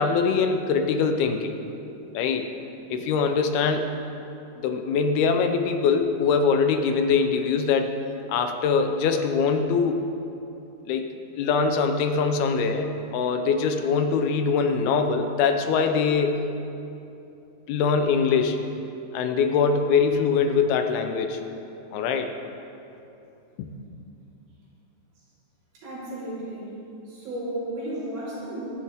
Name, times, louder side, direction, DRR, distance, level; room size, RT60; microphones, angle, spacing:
voice 1, 0.0-1.6 2.1-2.5 2.9-3.9 4.6-8.0 8.3-10.0 10.9-16.4 17.7-18.6 19.1-21.4 21.9-22.3 23.6-23.7, left 5 dB, 75° left, 6 dB, 2.6 m, -23 dB
voice 2, 25.7-26.8 27.1-28.8, right 1 dB, 75° right, -9 dB, 6.3 m, -33 dB
22.5 x 11.0 x 3.6 m, 2.8 s
omnidirectional pair, 4.7 m